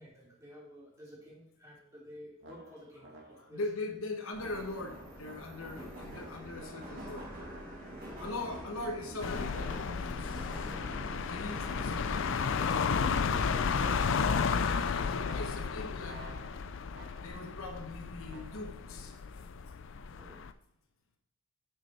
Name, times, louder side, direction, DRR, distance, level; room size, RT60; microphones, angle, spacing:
voice 1, 0.0-3.6 8.0-8.3 13.8-14.3 20.2-20.4, equal, 15° right, -6 dB, 2.8 m, -51 dB
sound 1, 2.4-3.7 4.4-5.9 6.6-8.1 8.7-10.3 10.9-12.3 13.1-13.6 13.9-14.6 15.2-17.5 18.3-18.6, right 2 dB, 55° right, 2.1 m, -54 dB
voice 2, 3.5-7.3 8.2-10.7 11.3-12.6 13.4-13.7 14.0-14.1 14.4-16.6 17.2-19.1, left 2 dB, 75° left, 4 dB, 1.1 m, -41 dB
Subway metro underground, 4.3-16.3, equal, 40° right, 2.6 m, -46 dB
sound 2, 9.2-20.5, left 5 dB, 60° left, 0.4 m, -33 dB
6.6 x 6.2 x 4.6 m, 0.74 s
head